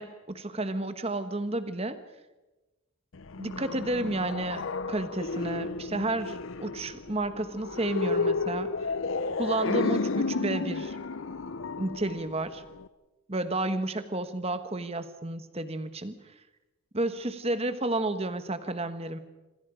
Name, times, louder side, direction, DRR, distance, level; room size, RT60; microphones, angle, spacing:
voice 1, 0.0-2.0 3.4-8.7 9.4-11.0 11.8-12.6 13.3-16.2 16.9-19.2, right 2 dB, 30° right, 10 dB, 1.3 m, -31 dB
sound 1, 3.1-12.9, left 4 dB, 65° left, 0.7 m, -32 dB
27.0 x 26.0 x 5.1 m, 1.1 s
head